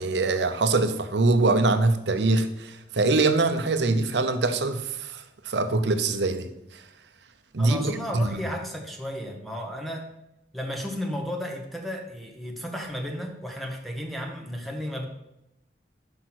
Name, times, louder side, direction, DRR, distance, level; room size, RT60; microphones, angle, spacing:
voice 1, 0.0-6.5 7.5-8.4, right 3 dB, 75° right, 0.7 m, -23 dB
voice 2, 7.6-10.1 10.5-15.1, equal, ahead, 1.0 m, -33 dB
6.2 x 5.7 x 6.0 m
head